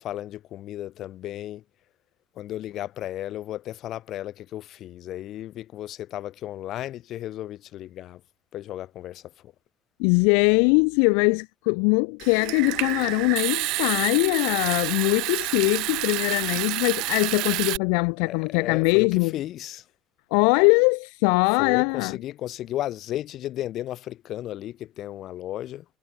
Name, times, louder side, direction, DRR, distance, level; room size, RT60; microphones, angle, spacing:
voice 1, 0.0-1.6 2.4-8.2 8.5-9.5 18.2-19.8 21.6-25.9, left 13 dB, 60° left, 1.8 m, -34 dB
voice 2, 10.0-19.3 20.3-22.2, left 40 dB or more, 85° left, 0.7 m, -22 dB
Water tap faucet / Sink (filling or washing) / Trickle dribble, 12.2-17.8, right 21 dB, 75° right, 3.8 m, -29 dB
supercardioid pair, 110°, 0 cm